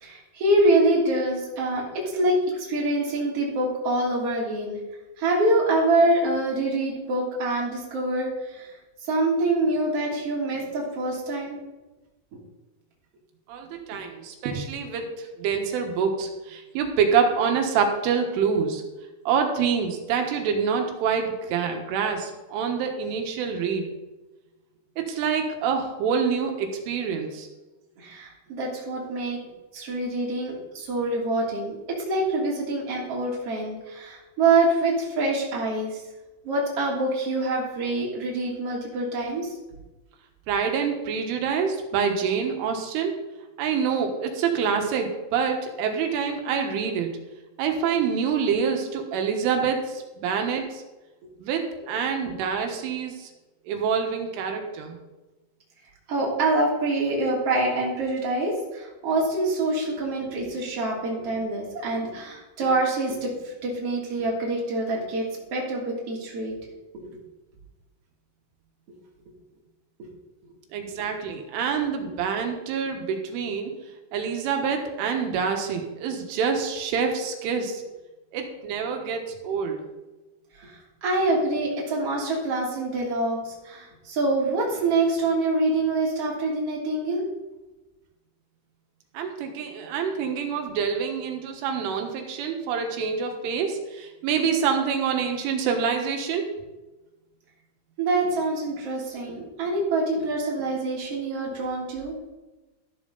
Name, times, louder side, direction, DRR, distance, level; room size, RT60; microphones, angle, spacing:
voice 1, 0.0-4.8 5.2-8.7 9.0-11.6 13.9-14.0 28.0-29.4 29.7-36.0 36.4-39.5 56.1-65.2 65.5-66.5 66.9-67.1 80.6-87.2 98.0-102.1, right 2 dB, 35° right, -4 dB, 3.5 m, -25 dB
voice 2, 13.5-18.8 19.3-23.9 25.0-27.5 40.5-43.2 43.6-47.1 47.6-50.8 51.4-51.6 51.9-53.3 53.7-55.0 70.7-73.7 74.1-77.8 78.3-79.8 89.2-96.5, right 6 dB, 80° right, 3 dB, 3.9 m, -26 dB
14.0 x 11.5 x 4.1 m, 1.1 s
omnidirectional pair, 5.5 m